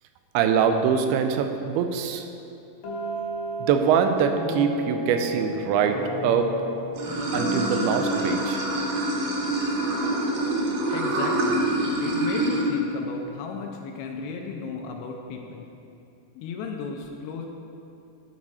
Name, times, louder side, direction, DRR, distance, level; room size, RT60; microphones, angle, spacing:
voice 1, 0.3-2.3 3.6-6.5 7.3-8.6, right 7 dB, 90° right, 6 dB, 2.5 m, -23 dB
sound 1, 2.8-10.6, left 1 dB, 65° left, 1.7 m, -34 dB
Water / Sink (filling or washing), 7.0-12.6, right 1 dB, 70° right, 2.3 m, -26 dB
voice 2, 10.9-11.7 12.0-15.6 16.4-17.5, left 5 dB, 85° left, 2 dB, 2.5 m, -35 dB
9.7 x 4.1 x 4.8 m, 2.7 s
omnidirectional pair, 4.4 m